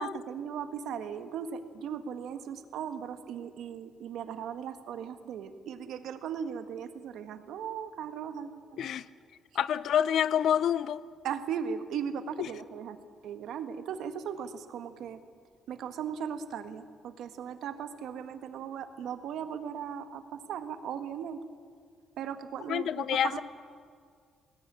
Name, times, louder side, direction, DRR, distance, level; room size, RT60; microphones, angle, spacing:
voice 1, 0.0-8.9 11.2-13.0 13.2-15.2 15.7-21.4 22.2-23.4, right 7 dB, 75° right, 1.6 m, -38 dB
voice 2, 9.5-11.0 12.4-12.5 22.7-23.4, left 9 dB, 65° left, 0.5 m, -27 dB
20.5 x 18.5 x 10.0 m
cardioid pair, 140°, 0 cm